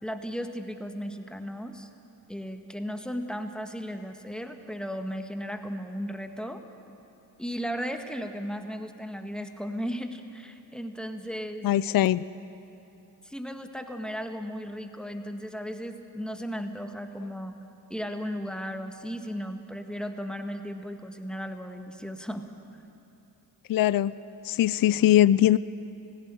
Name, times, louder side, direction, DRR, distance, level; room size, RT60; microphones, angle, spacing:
voice 1, 0.0-1.9 2.3-6.6 7.4-11.7 13.2-17.5 17.9-22.4, equal, ahead, 6 dB, 1.8 m, -35 dB
voice 2, 11.6-12.2 23.7-24.1 24.4-25.6, left 12 dB, 50° left, 18 dB, 0.5 m, -21 dB
17.0 x 16.5 x 10.0 m, 2.9 s
supercardioid pair, 55°, 45 cm